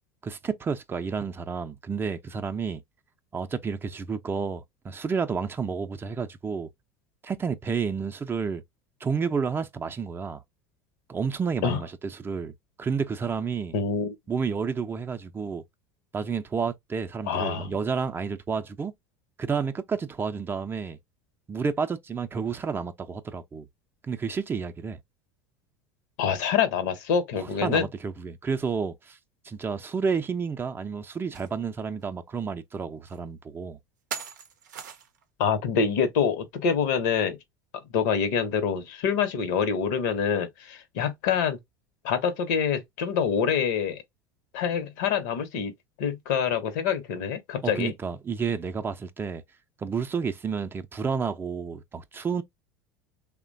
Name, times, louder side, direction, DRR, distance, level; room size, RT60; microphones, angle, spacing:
voice 1, 0.2-2.8 3.3-6.7 7.2-8.6 9.0-10.4 11.1-12.5 12.8-13.7 14.3-15.6 16.1-18.9 19.4-21.0 21.5-23.7 24.1-25.0 27.3-29.2 29.4-33.8 47.6-49.4 49.8-52.4, right 5 dB, 25° right, 0.4 m, -30 dB
voice 2, 13.7-14.1 17.2-17.7 26.2-27.9 35.4-37.4 37.9-41.6 42.0-44.0 44.5-45.7 46.0-47.9, left 7 dB, 70° left, 0.8 m, -26 dB
sound 1, 31.3-31.5 32.0-32.1 33.1-33.2 34.1-35.2, right 7 dB, 85° right, 0.6 m, -38 dB
3.0 x 2.1 x 2.5 m
hypercardioid pair, 85°, 10 cm